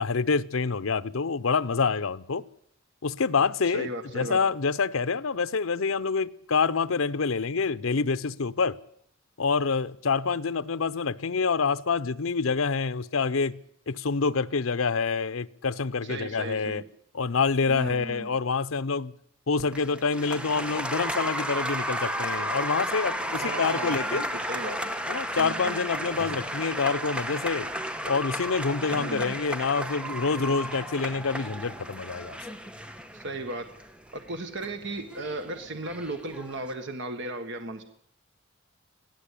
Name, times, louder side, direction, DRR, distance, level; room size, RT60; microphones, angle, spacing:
voice 1, 0.0-2.4 3.0-8.8 9.4-16.8 17.1-19.1 19.5-24.3 25.1-27.7 28.0-32.4, left 4 dB, 80° left, 0.7 m, -27 dB
voice 2, 3.7-4.4 16.0-16.8 17.7-18.3 23.4-24.9 25.4-25.8 28.9-29.3 33.1-33.6 34.1-37.8, right 2 dB, 60° right, 1.6 m, -36 dB
Applause, 19.6-36.7, equal, 5° right, 1.4 m, -33 dB
Strum, 26.1-30.3, equal, 55° left, 3.9 m, -53 dB
22.0 x 15.0 x 8.5 m
head